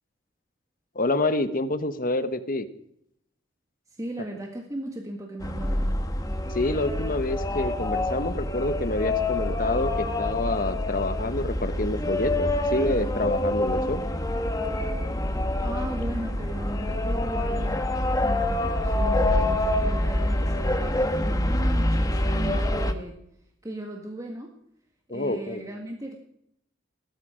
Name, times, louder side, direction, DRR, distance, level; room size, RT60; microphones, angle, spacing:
voice 1, 0.9-2.7 6.5-14.0 25.1-25.6, left 2 dB, 45° left, 11 dB, 1.2 m, -27 dB
voice 2, 3.9-6.0 15.6-23.2 23.6-24.5 25.1-26.2, right 1 dB, 15° right, 1 dB, 1.8 m, -37 dB
sound 1, 5.4-22.9, left 1 dB, 20° left, 1.2 m, -26 dB
19.0 x 13.0 x 5.1 m, 0.73 s
head